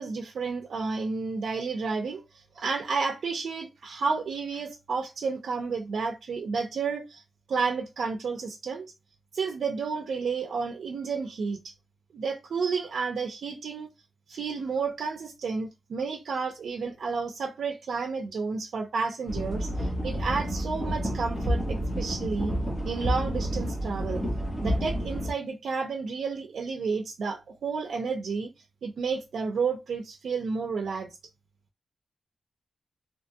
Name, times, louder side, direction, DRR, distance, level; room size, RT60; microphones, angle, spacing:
voice 1, 0.0-7.2 7.5-8.9 9.3-11.7 12.1-13.9 14.3-22.5 22.8-24.2 24.6-28.5 28.8-31.2, right 5 dB, 80° right, 0.4 m, -31 dB
sound 1, 19.3-25.3, equal, 15° left, 0.7 m, -30 dB
2.8 x 2.2 x 2.6 m
wide cardioid pair, 180°, 0 cm